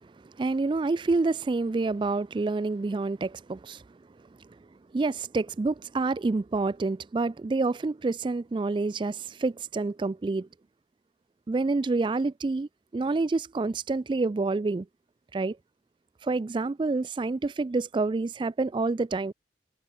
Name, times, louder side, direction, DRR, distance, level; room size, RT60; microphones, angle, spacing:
voice 1, 0.4-3.8 4.9-10.5 11.5-14.8 15.3-15.5 16.2-19.3, right 3 dB, 25° right, 0.3 m, -28 dB
head